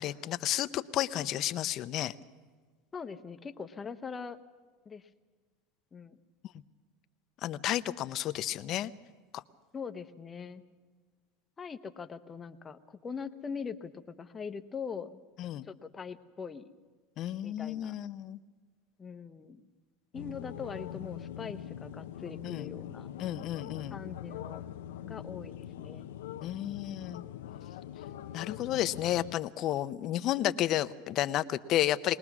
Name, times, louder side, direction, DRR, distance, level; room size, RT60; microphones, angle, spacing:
voice 1, 0.0-2.1 7.4-8.9 9.3-9.4 15.4-15.7 17.2-18.4 22.4-22.7 23.2-24.0 26.4-27.2 28.3-32.2, left 13 dB, 45° left, 13 dB, 0.7 m, -32 dB
voice 2, 2.9-4.4 4.9-5.1 5.9-6.2 9.7-10.6 11.6-15.2 15.6-16.6 17.4-17.9 19.0-19.7 20.1-23.1 23.9-24.7 25.0-26.1, left 6 dB, 20° left, 10 dB, 0.9 m, -42 dB
sound 1, 20.1-29.4, left 11 dB, 90° left, 0.7 m, -43 dB
21.5 x 20.0 x 6.1 m, 1.5 s
supercardioid pair, 120°, 0 cm